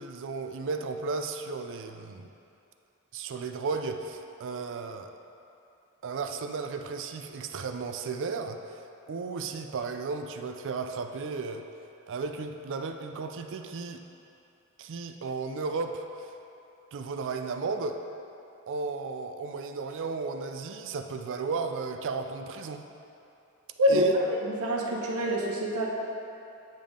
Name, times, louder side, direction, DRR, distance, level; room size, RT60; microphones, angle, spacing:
voice 1, 0.0-2.3 3.1-5.1 6.0-11.6 12.1-14.0 14.8-16.3 16.9-18.0 18.7-22.9 23.9-24.2, right 4 dB, 60° right, 6 dB, 0.4 m, -34 dB
voice 2, 23.8-25.9, equal, 75° right, -2 dB, 1.0 m, -26 dB
8.8 x 5.3 x 3.7 m, 2.7 s
head